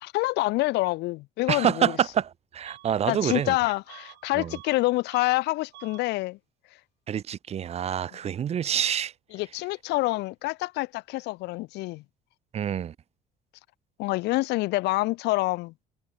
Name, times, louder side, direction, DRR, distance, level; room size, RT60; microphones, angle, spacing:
voice 1, 0.0-1.9 3.1-6.4 9.3-12.0 14.0-15.7, left 20 dB, 85° left, 0.8 m, -27 dB
voice 2, 1.5-3.6 4.3-4.6 7.1-9.1 12.5-12.9, right 9 dB, 40° right, 0.5 m, -27 dB
Bus / Alarm, 2.7-3.0 3.3-4.8 5.1-5.4 5.7-6.1, right 17 dB, 80° right, 1.8 m, -49 dB
cardioid pair, 110°, 17 cm